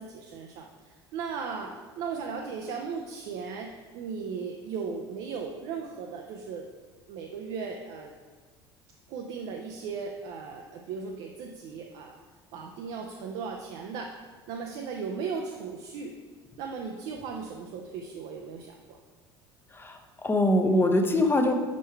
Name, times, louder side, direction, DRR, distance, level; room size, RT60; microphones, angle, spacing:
voice 1, 0.0-6.7 7.1-8.1 9.1-12.2 12.5-14.2 14.5-16.1 16.6-19.0, right 5 dB, 50° right, 1 dB, 0.5 m, -37 dB
voice 2, 19.7-21.5, left 1 dB, 15° left, 4 dB, 0.7 m, -23 dB
5.4 x 5.2 x 4.4 m, 1.4 s
figure-of-eight pair, 65°, 14 cm